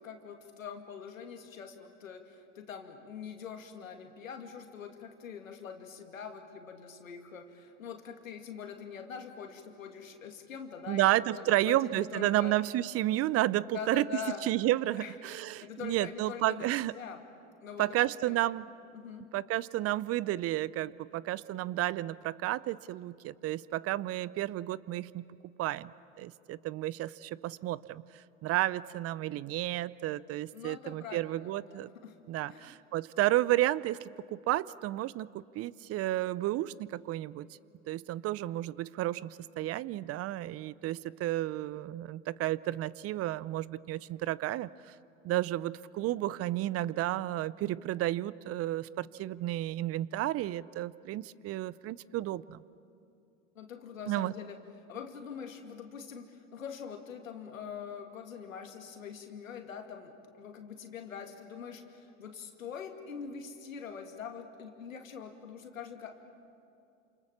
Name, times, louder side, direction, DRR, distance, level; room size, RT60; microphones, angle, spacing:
voice 1, 0.0-12.6 13.7-14.4 15.0-15.2 15.6-17.2 17.6-18.5 18.9-19.3 30.5-32.2 32.5-32.7 53.5-54.6 54.9-66.2, left 7 dB, 85° left, 5 dB, 2.4 m, -44 dB
voice 2, 10.9-14.1 14.4-16.9 17.8-18.7 19.3-25.3 25.6-28.0 28.4-31.9 32.3-37.5 37.9-44.9 45.2-52.6 54.1-54.3, right 15 dB, 40° right, 20 dB, 0.6 m, -32 dB
28.5 x 27.5 x 7.2 m, 2.6 s
hypercardioid pair, 90°, 39 cm